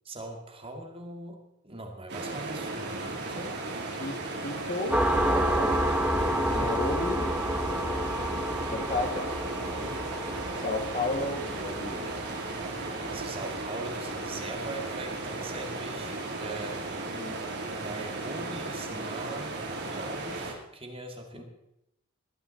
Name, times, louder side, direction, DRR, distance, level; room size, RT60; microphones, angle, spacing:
voice 1, 0.1-3.6 6.3-6.7 13.1-17.1 17.7-19.5 19.9-21.4, right 2 dB, 25° right, 3 dB, 2.0 m, -41 dB
sound 1, 2.1-20.5, right 2 dB, 50° right, 2.9 m, -35 dB
voice 2, 4.4-5.7 6.5-7.3 7.7-8.0 8.7-10.2 10.6-12.1 17.1-17.4 21.3-21.4, left 2 dB, 35° left, 4 dB, 2.0 m, -34 dB
sound 2, 4.9-14.2, equal, 5° right, 1.0 m, -30 dB
19.0 x 12.0 x 4.1 m, 0.82 s
head